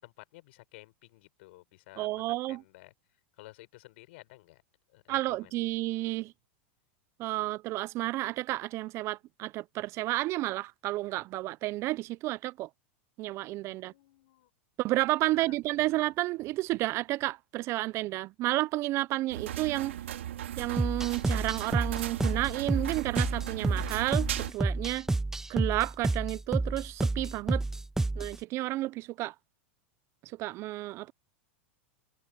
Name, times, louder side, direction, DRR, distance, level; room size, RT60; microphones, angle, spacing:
voice 1, 0.0-2.9 3.4-4.6 4.9-5.7 13.6-14.5 15.3-15.9, left 20 dB, 65° left, 5.7 m, -54 dB
voice 2, 2.0-2.6 5.1-6.3 7.2-12.7 13.2-13.9 14.8-20.0 20.6-25.1 25.5-27.6 28.2-29.3 30.4-31.1, right 18 dB, 45° right, 0.7 m, -31 dB
sound 1, 19.3-24.5, right 12 dB, 80° right, 2.5 m, -37 dB
sound 2, 20.8-28.4, right 2 dB, 5° right, 0.8 m, -30 dB
hypercardioid pair, 105°, 7 cm